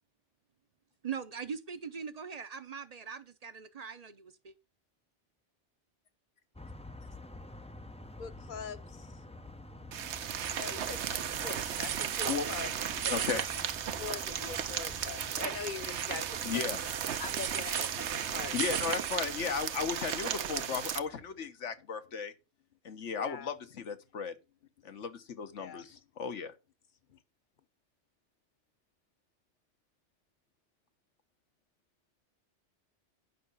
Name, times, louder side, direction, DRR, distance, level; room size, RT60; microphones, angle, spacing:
voice 1, 1.0-4.5, right 6 dB, 40° right, 0.6 m, -41 dB
sound 1, 6.5-21.4, left 2 dB, 10° left, 0.3 m, -50 dB
voice 2, 8.2-9.2 10.6-13.3 14.0-16.7 17.2-18.6 23.2-23.5 25.6-26.0, left 6 dB, 45° left, 0.9 m, -43 dB
sound 2, 9.9-21.0, right 9 dB, 75° right, 1.0 m, -34 dB
voice 3, 13.0-13.4 16.4-16.8 18.5-22.3 22.8-24.3 24.8-26.5, left 6 dB, 80° left, 1.5 m, -35 dB
10.0 x 5.7 x 5.5 m
omnidirectional pair, 1.2 m